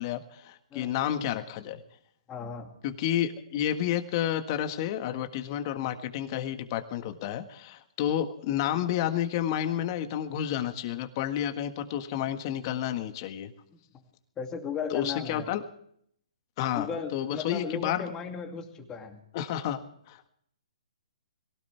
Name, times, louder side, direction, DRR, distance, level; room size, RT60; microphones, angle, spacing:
voice 1, 0.0-1.8 2.8-13.5 14.9-15.6 16.6-18.1 19.3-19.8 20.1-20.3, left 10 dB, 40° left, 8 dB, 1.6 m, -30 dB
voice 2, 2.3-2.7 13.7-13.8 14.4-15.5 16.7-19.2, left 6 dB, 15° left, 4 dB, 2.5 m, -36 dB
23.0 x 17.0 x 3.4 m, 0.68 s
hypercardioid pair, 145°, 4 cm